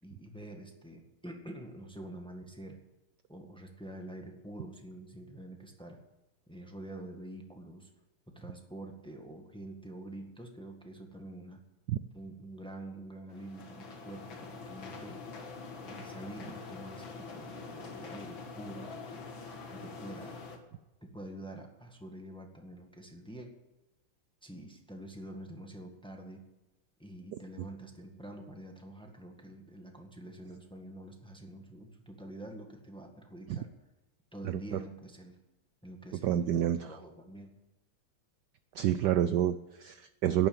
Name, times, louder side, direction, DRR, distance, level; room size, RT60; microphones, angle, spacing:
voice 1, 0.0-2.8 3.3-6.0 6.5-7.9 8.3-11.6 12.1-15.2 15.8-19.2 19.7-20.4 21.0-23.5 24.4-26.4 27.0-33.7 34.3-35.4 35.8-37.5, right 1 dB, 5° left, 3 dB, 1.5 m, -46 dB
sound 1, 13.3-20.6, left 4 dB, 65° left, 2.4 m, -45 dB
voice 2, 34.4-34.8 36.2-36.9 38.8-40.5, right 11 dB, 70° right, 12 dB, 1.0 m, -28 dB
11.5 x 11.0 x 8.8 m, 1.0 s
omnidirectional pair, 2.3 m